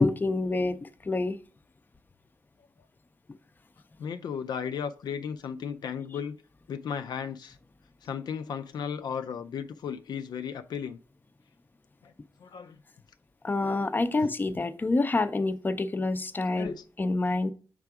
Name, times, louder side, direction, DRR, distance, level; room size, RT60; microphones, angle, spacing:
voice 1, 0.0-1.4 13.4-17.5, left 3 dB, 25° left, 0.5 m, -27 dB
voice 2, 4.0-6.4 6.7-7.6 8.0-11.0 12.0-12.1 12.4-12.8 14.2-14.3 16.6-16.8, left 7 dB, 80° left, 0.4 m, -35 dB
6.8 x 3.4 x 4.7 m
cardioid pair, 75°, 7 cm